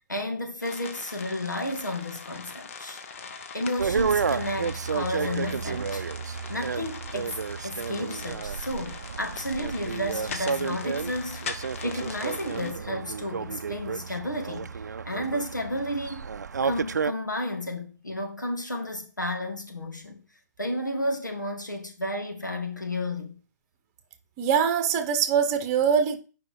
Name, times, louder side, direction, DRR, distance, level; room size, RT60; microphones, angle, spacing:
voice 1, 0.1-3.0 3.5-6.0 6.5-11.5 11.8-16.3 16.6-20.2 20.6-23.4, left 1 dB, 90° left, 2.3 m, -32 dB
sound 1, 0.6-12.7, left 5 dB, 45° left, 1.1 m, -41 dB
sound 2, 3.8-17.1, right 6 dB, 70° right, 0.5 m, -31 dB
voice 2, 24.4-26.2, right 7 dB, 25° right, 1.1 m, -23 dB
8.3 x 5.2 x 4.7 m
figure-of-eight pair, 135°, 10 cm